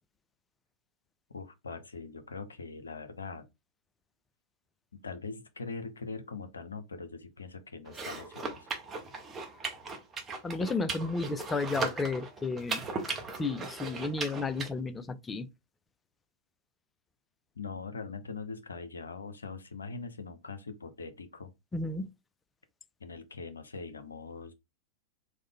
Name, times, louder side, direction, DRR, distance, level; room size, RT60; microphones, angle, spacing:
voice 1, 1.3-3.5 4.9-8.7 17.6-21.5 23.0-24.5, left 4 dB, 75° left, 0.5 m, -42 dB
sound 1, 7.9-14.7, right 4 dB, 20° right, 0.7 m, -38 dB
voice 2, 10.4-12.8 13.4-15.5 21.7-22.1, left 3 dB, 15° left, 0.4 m, -32 dB
3.1 x 2.1 x 3.5 m
figure-of-eight pair, 90°, 0 cm